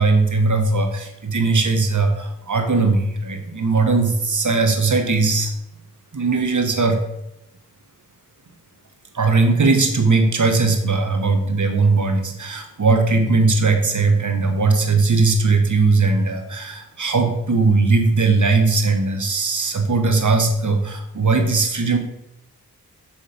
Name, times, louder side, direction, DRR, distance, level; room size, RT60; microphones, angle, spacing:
voice 1, 0.0-5.5 6.1-7.0 9.1-22.0, right 3 dB, 50° right, 4 dB, 1.4 m, -19 dB
7.2 x 3.5 x 5.1 m, 0.83 s
cardioid pair, 40°, 38 cm